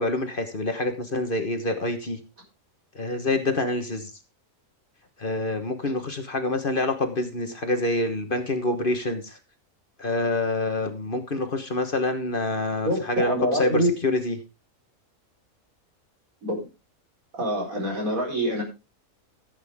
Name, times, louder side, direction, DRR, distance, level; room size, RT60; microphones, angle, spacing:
voice 1, 0.0-2.2 2.9-4.1 5.2-9.4 10.0-14.4, left 2 dB, 40° left, 7 dB, 1.4 m, -26 dB
voice 2, 12.8-13.9 16.4-16.6 17.4-18.6, equal, 75° right, -1 dB, 5.0 m, -25 dB
15.0 x 8.3 x 3.6 m, 0.29 s
omnidirectional pair, 1.5 m